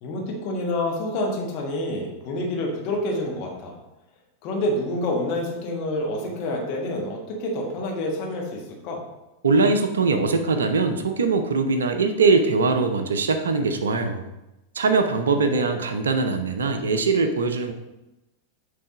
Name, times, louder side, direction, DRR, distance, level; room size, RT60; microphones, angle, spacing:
voice 1, 0.0-3.7 4.4-9.0 15.3-15.8, left 1 dB, 40° left, 0 dB, 1.5 m, -28 dB
voice 2, 9.4-14.3 14.7-17.7, right 4 dB, 65° right, 8 dB, 0.6 m, -22 dB
9.1 x 3.4 x 3.8 m, 0.98 s
figure-of-eight pair, 90°, 0 cm